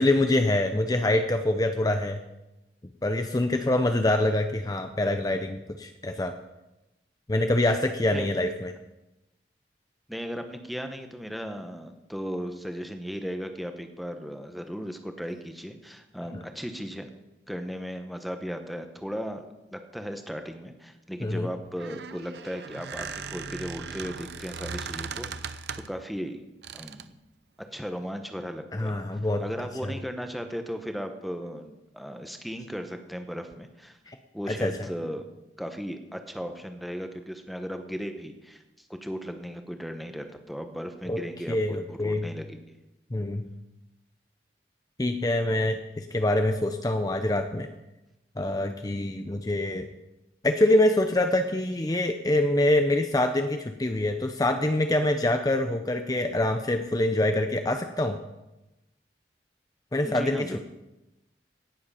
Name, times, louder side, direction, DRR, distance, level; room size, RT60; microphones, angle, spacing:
voice 1, 0.0-2.2 3.0-6.3 7.3-8.7 16.3-16.4 21.2-21.5 28.7-29.4 29.8-29.9 34.1-34.2 34.5-34.9 41.1-41.2 41.5-42.3 43.1-43.5 45.0-47.7 48.4-49.9 50.4-58.2 59.9-60.6, left 1 dB, 20° left, 6 dB, 0.6 m, -25 dB
voice 2, 10.1-17.1 17.5-19.4 19.7-25.6 25.9-26.4 26.7-27.1 27.7-29.0 29.4-34.0 34.3-35.2 35.6-42.6 60.0-60.6, equal, ahead, 6 dB, 1.0 m, -36 dB
Squeak, 21.6-26.0 26.6-27.1, right 5 dB, 70° right, 0.6 m, -38 dB
17.5 x 7.7 x 5.7 m, 0.98 s
head